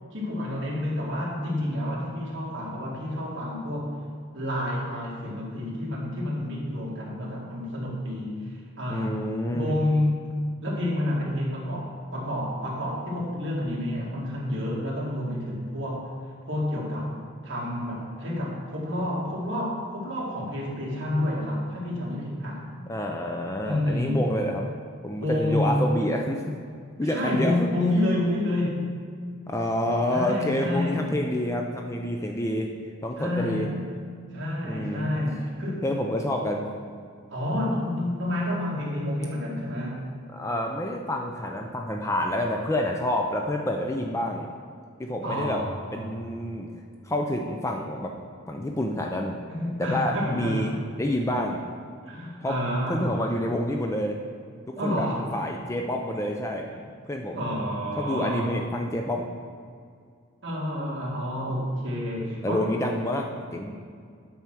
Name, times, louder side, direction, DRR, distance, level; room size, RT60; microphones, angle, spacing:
voice 1, 0.1-3.9 4.3-9.2 9.5-10.2 10.6-16.2 16.5-17.2 17.4-22.6 23.6-24.3 25.2-25.8 27.0-29.0 30.1-31.1 33.2-33.8 34.3-35.9 37.3-40.1 45.2-46.1 49.5-50.7 52.0-53.3 54.8-55.3 56.7-56.8 57.3-58.6 60.4-62.7, left 1 dB, 55° right, -4 dB, 2.0 m, -29 dB
voice 2, 8.9-9.8 22.9-24.7 25.0-26.5 27.0-27.7 29.5-32.7 33.0-33.7 34.6-35.1 35.8-36.6 40.3-44.5 45.0-45.6 45.9-46.7 47.0-48.1 48.5-49.4 49.8-50.7 51.0-51.6 52.4-52.6 52.9-54.2 54.7-55.1 55.3-56.7 57.1-57.4 58.0-59.3 62.4-63.7, left 1 dB, 15° left, 2 dB, 0.4 m, -28 dB
9.0 x 4.4 x 6.1 m, 2.2 s
head